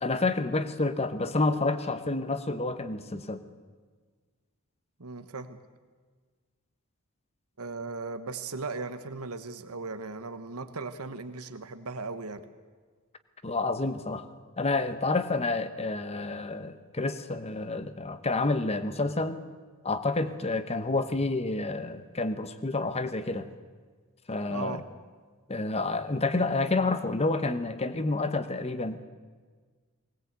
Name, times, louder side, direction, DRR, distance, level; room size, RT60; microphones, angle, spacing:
voice 1, 0.0-3.4 13.4-14.3 14.6-19.4 19.8-23.5 24.3-24.8 25.5-29.1, left 3 dB, 30° left, 11 dB, 1.0 m, -29 dB
voice 2, 5.0-5.6 7.6-12.4 24.5-24.8, right 3 dB, 80° right, 9 dB, 1.2 m, -37 dB
19.5 x 19.5 x 8.2 m, 1.5 s
head